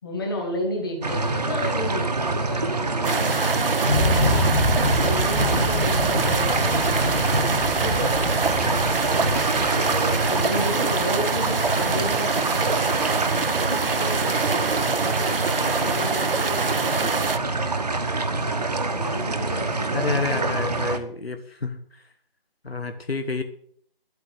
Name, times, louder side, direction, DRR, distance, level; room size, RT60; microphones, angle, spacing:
voice 1, 0.0-4.5 5.0-12.5 13.1-13.4 13.7-17.3 18.4-20.6, left 1 dB, 25° left, 1 dB, 2.4 m, -33 dB
sound 1, 1.0-21.0, right 3 dB, 45° right, 1.1 m, -26 dB
sound 2, 3.0-17.4, right 4 dB, 70° right, 0.8 m, -25 dB
sound 3, 3.8-12.7, left 1 dB, 5° left, 1.0 m, -27 dB
voice 2, 19.9-21.8 22.6-23.4, left 4 dB, 85° left, 8 dB, 1.5 m, -29 dB
11.0 x 8.6 x 6.8 m, 0.63 s
figure-of-eight pair, 165°, 30 cm